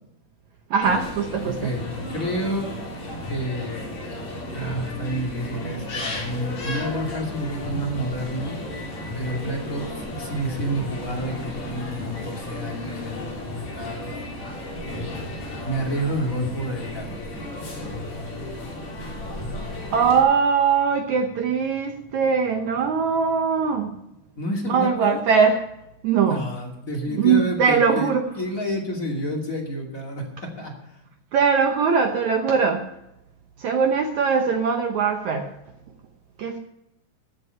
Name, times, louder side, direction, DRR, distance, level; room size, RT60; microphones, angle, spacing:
voice 1, 0.7-1.7 19.9-23.9 24.7-25.6 26.0-26.5 27.1-28.3 31.3-32.8 33.6-35.5 36.4-36.6, right 6 dB, 75° right, 5 dB, 1.7 m, -21 dB
sound 1, 0.8-20.2, left 1 dB, 45° left, 4.6 m, -34 dB
voice 2, 1.4-2.7 3.3-3.9 4.5-8.6 9.1-14.5 14.8-15.1 15.6-17.2 24.3-25.2 26.3-30.9, equal, 25° left, 0 dB, 2.3 m, -29 dB
14.5 x 9.8 x 5.5 m, 0.85 s
omnidirectional pair, 4.5 m